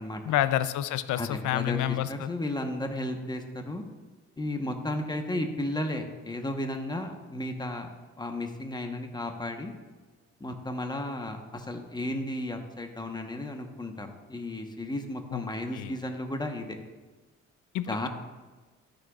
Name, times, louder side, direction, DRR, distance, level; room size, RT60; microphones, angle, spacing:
voice 1, 0.3-2.3 15.3-15.4 15.7-15.9 17.7-18.1, left 12 dB, 80° left, 14 dB, 0.5 m, -28 dB
voice 2, 1.2-3.8 4.4-9.7 10.4-16.8 17.9-18.1, left 1 dB, 15° left, 4 dB, 1.0 m, -34 dB
12.5 x 6.3 x 2.4 m, 1.3 s
cardioid pair, 90°, 30 cm